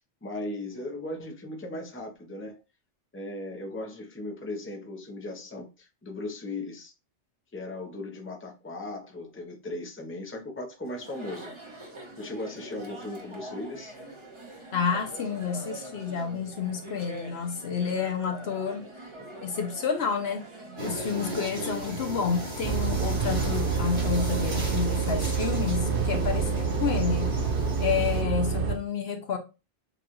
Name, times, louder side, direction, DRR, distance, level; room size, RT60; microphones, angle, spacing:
voice 1, 0.2-2.6 3.1-6.9 7.5-11.8 12.2-14.0, left 2 dB, 15° left, 0.7 m, -37 dB
Chatter, 10.8-25.0, right 2 dB, 25° right, 1.0 m, -44 dB
voice 2, 14.7-18.9 19.4-20.5 20.8-27.3 27.8-29.4, left 6 dB, 65° left, 0.9 m, -29 dB
sound 1, 20.8-28.2, right 1 dB, 90° right, 3.0 m, -35 dB
sound 2, 22.6-28.8, right 6 dB, 60° right, 0.7 m, -27 dB
6.9 x 2.5 x 3.0 m
omnidirectional pair, 1.2 m